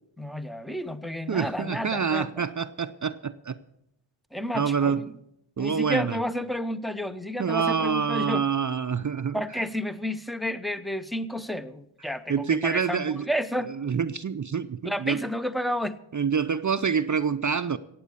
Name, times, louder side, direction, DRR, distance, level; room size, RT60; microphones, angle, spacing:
voice 1, 0.2-2.3 4.3-5.1 5.6-8.5 9.3-13.7 14.8-16.0, equal, ahead, 13 dB, 0.8 m, -31 dB
voice 2, 1.3-3.6 4.5-5.0 5.6-6.2 7.4-9.4 12.3-13.2 13.8-15.2 16.1-17.8, right 6 dB, 40° right, 11 dB, 0.6 m, -26 dB
16.0 x 8.5 x 6.8 m, 0.80 s
cardioid pair, 55°, 50 cm